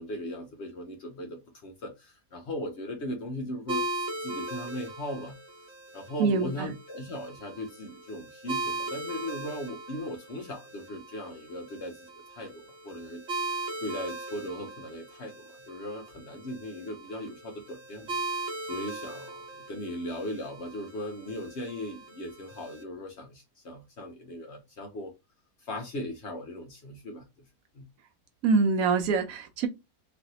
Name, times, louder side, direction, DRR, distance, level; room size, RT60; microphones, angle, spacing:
voice 1, 0.0-5.4 5.9-13.2 13.5-18.2 18.7-25.1 25.6-27.3 27.7-27.9, left 1 dB, 55° left, 0.8 m, -38 dB
sound 1, 3.7-22.8, right 2 dB, 45° right, 1.2 m, -39 dB
voice 2, 6.2-6.7 28.4-29.7, right 4 dB, 70° right, 1.0 m, -25 dB
3.2 x 2.5 x 2.7 m
omnidirectional pair, 1.6 m